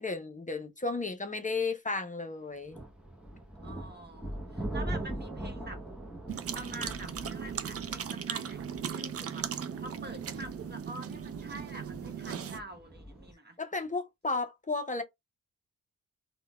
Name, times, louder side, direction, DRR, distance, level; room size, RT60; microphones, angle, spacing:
voice 1, 0.0-2.8 13.6-15.0, left 3 dB, 25° left, 0.6 m, -33 dB
sound 1, 2.7-13.3, right 1 dB, 5° right, 0.9 m, -42 dB
voice 2, 3.6-5.8 6.5-13.6, right 2 dB, 30° right, 1.3 m, -46 dB
sound 2, 6.3-12.6, right 8 dB, 45° right, 0.5 m, -38 dB
3.7 x 2.2 x 2.2 m
cardioid pair, 60°, 33 cm